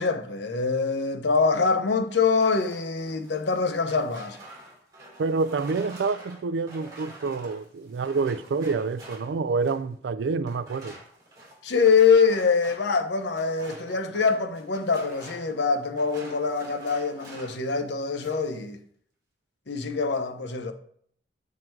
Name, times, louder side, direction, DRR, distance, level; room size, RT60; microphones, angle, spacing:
voice 1, 0.0-4.4 11.6-18.8 19.7-20.7, left 5 dB, 70° left, 0.7 m, -24 dB
sound 1, 2.2-9.9 10.4-17.7 18.0-18.6, right 1 dB, 25° right, 2.6 m, -47 dB
voice 2, 5.2-11.0, right 4 dB, 70° right, 0.4 m, -27 dB
7.6 x 3.7 x 4.5 m
head